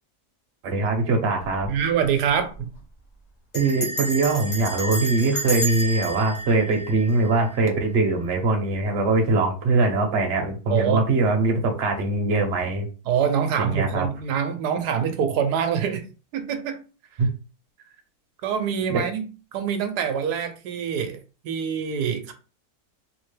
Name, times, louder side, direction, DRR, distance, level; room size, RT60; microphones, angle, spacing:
voice 1, 0.6-1.7 3.5-12.9 13.6-14.1 17.2-17.3 18.9-19.0, right 3 dB, 50° right, 1.0 m, -22 dB
Bell, 1.4-1.8 2.1-2.2 2.4-2.8 3.5-7.6, right 1 dB, 55° left, 1.6 m, -31 dB
voice 2, 1.7-2.7 10.7-11.0 13.1-16.0 16.3-16.8 18.4-22.3, right 7 dB, 85° right, 1.2 m, -25 dB
3.6 x 2.8 x 3.2 m
omnidirectional pair, 1.7 m